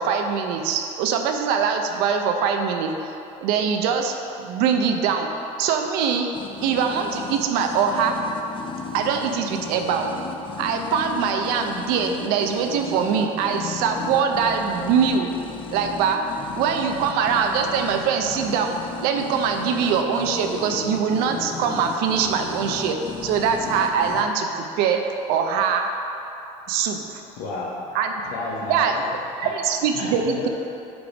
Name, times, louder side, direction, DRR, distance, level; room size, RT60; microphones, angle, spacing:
voice 1, 0.0-5.3 5.6-6.3 6.6-8.2 8.9-10.1 10.6-15.3 15.7-16.2 16.5-18.8 19.0-25.0 25.3-25.9 26.7-27.2 27.9-28.1 28.7-29.0 29.4-30.5, right 6 dB, 80° right, 4 dB, 0.6 m, -23 dB
sound 1, 6.3-24.2, left 5 dB, 35° left, 0.6 m, -35 dB
voice 2, 27.4-28.0 28.3-29.0 29.4-29.5 29.9-30.5, left 2 dB, 75° left, -5 dB, 0.9 m, -31 dB
8.0 x 3.4 x 5.1 m, 2.8 s
supercardioid pair, 95°, 16 cm